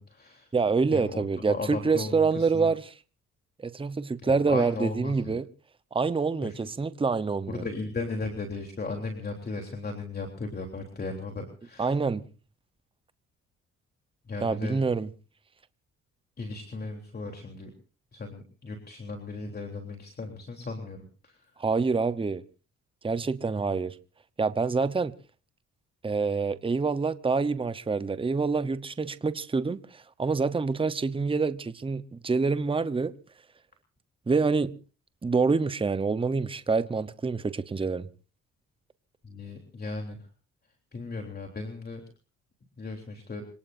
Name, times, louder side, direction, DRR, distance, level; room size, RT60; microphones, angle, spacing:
voice 1, 0.0-0.5 0.9-2.7 4.3-5.4 6.4-6.7 7.5-12.0 14.3-14.8 16.4-17.7 18.1-21.5 39.2-40.2 40.9-42.0 42.8-43.4, left 3 dB, 30° left, 3.4 m, -36 dB
voice 2, 0.5-2.9 3.6-5.5 5.9-7.7 11.8-12.2 14.4-15.1 21.6-22.4 23.0-24.0 24.4-25.1 26.0-33.1 34.3-34.7 35.2-38.1, right 4 dB, 15° right, 0.9 m, -26 dB
27.0 x 19.0 x 2.6 m
cardioid pair, 90°, 30 cm